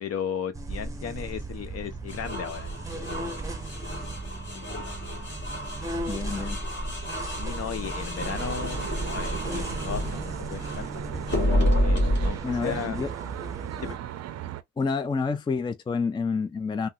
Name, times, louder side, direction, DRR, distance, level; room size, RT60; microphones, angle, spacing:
voice 1, 0.0-3.5 4.0-4.1 4.5-4.7 7.4-11.4 11.8-13.0 13.8-14.0, left 8 dB, 55° left, 0.8 m, -36 dB
sound 1, 0.5-14.0, right 2 dB, 10° right, 0.8 m, -37 dB
sound 2, 2.1-10.9 11.3-12.3, equal, 40° left, 1.4 m, -29 dB
voice 2, 6.1-6.6 12.4-13.1 14.8-16.9, left 4 dB, 15° left, 0.4 m, -28 dB
Traffic noise roadway noise, 8.2-14.6, right 12 dB, 55° right, 0.5 m, -37 dB
3.6 x 2.0 x 2.7 m
cardioid pair, 90°, 30 cm